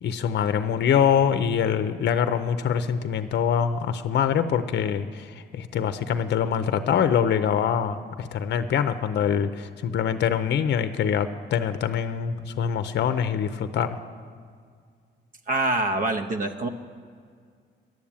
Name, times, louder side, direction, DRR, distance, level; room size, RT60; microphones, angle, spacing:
voice 1, 0.0-14.0, left 8 dB, 60° left, 10 dB, 0.6 m, -24 dB
voice 2, 15.5-16.7, right 2 dB, 45° right, 6 dB, 0.7 m, -25 dB
11.0 x 7.2 x 8.7 m, 2.1 s
cardioid pair, 90°, 20 cm